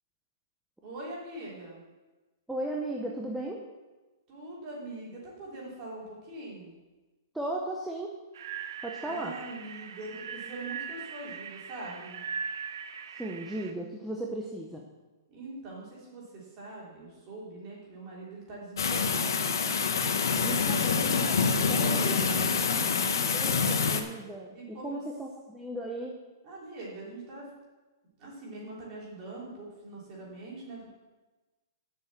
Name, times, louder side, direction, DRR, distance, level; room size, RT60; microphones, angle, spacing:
voice 1, 0.8-1.8 4.3-6.7 9.0-12.2 15.3-19.5 21.4-23.7 24.5-25.0 26.4-27.5 28.2-30.9, right 2 dB, 25° right, -5 dB, 3.3 m, -42 dB
voice 2, 2.5-3.6 7.3-8.1 8.8-9.4 13.2-14.8 20.4-22.1 23.3-26.2, right 1 dB, ahead, -2 dB, 0.6 m, -36 dB
sound 1, 8.3-13.7, right 6 dB, 65° right, 0.8 m, -40 dB
sound 2, 18.8-24.0, left 5 dB, 80° left, 1.0 m, -26 dB
7.7 x 6.2 x 7.5 m, 1.2 s
hypercardioid pair, 170°, 2 cm